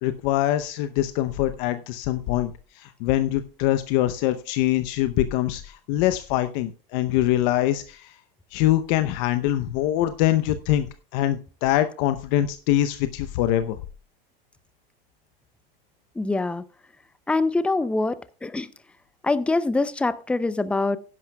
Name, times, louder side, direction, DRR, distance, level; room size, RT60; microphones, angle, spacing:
voice 1, 0.0-2.5 2.8-8.1 8.5-10.9 11.1-13.8, left 13 dB, 55° left, 10 dB, 0.8 m, -23 dB
voice 2, 16.2-16.6 17.3-18.7 19.2-21.0, left 3 dB, 5° left, 15 dB, 0.4 m, -24 dB
16.0 x 11.0 x 2.3 m, 0.36 s
supercardioid pair, 125°, 30 cm